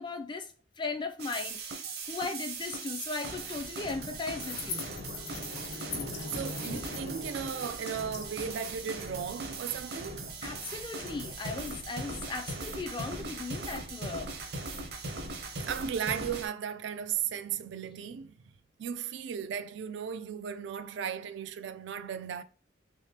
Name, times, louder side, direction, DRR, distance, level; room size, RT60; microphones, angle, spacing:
voice 1, 0.0-4.9 10.4-14.3, left 3 dB, 25° left, 0.4 m, -37 dB
sound 1, 1.2-16.5, right 3 dB, 55° right, 0.7 m, -39 dB
sound 2, 4.4-10.9, left 3 dB, 70° left, 0.9 m, -41 dB
voice 2, 6.3-10.3 15.6-18.4 18.8-22.4, right 8 dB, 70° right, 0.3 m, -36 dB
3.4 x 3.2 x 2.7 m
head